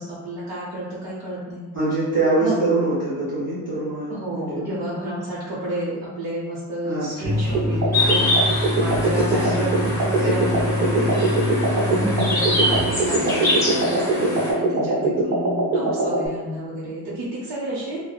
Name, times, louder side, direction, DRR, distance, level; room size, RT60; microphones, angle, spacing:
voice 1, 0.0-1.6 2.4-2.5 4.1-11.2 11.7-18.0, right 1 dB, 80° right, -8 dB, 0.7 m, -30 dB
voice 2, 1.7-4.6 6.8-7.4 7.7-7.8 9.4-9.8 10.2-10.3 10.9-11.2 11.7-12.6 14.7-15.1, right 2 dB, 30° right, -13 dB, 1.0 m, -25 dB
sound 1, 7.2-13.4, left 1 dB, 60° right, 1.0 m, -26 dB
sound 2, 7.5-16.3, right 2 dB, 45° right, 0.4 m, -23 dB
sound 3, 7.9-14.5, left 1 dB, 5° left, 0.6 m, -25 dB
3.0 x 2.0 x 2.2 m, 1.3 s
cardioid pair, 145°, 42 cm